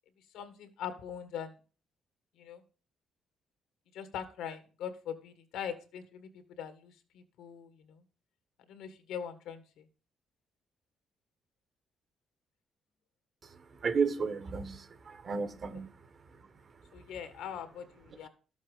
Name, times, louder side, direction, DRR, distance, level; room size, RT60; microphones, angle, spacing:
voice 1, 0.3-1.5 2.4-2.6 3.9-6.3 6.6-8.0 8.7-9.8 15.7-15.8 16.9-18.3, left 8 dB, 90° left, 1.7 m, -42 dB
voice 2, 13.8-15.9, right 5 dB, 45° right, 1.3 m, -32 dB
12.5 x 7.3 x 5.0 m
cardioid pair, 90°, 0 cm